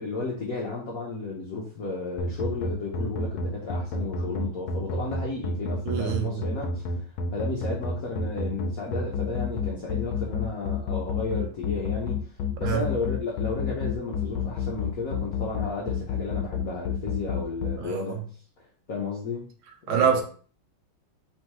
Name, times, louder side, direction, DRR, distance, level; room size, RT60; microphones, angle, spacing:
voice 1, 0.0-6.8 7.3-12.2 12.6-18.2 18.9-19.5 19.9-20.2, left 3 dB, 60° left, 1.0 m, -33 dB
sound 1, 2.2-17.7, left 4 dB, 80° left, 1.4 m, -29 dB
voice 2, 5.9-6.4 12.6-12.8 17.8-18.2 19.9-20.2, right 8 dB, 80° right, 1.6 m, -25 dB
4.5 x 3.4 x 2.9 m
omnidirectional pair, 2.3 m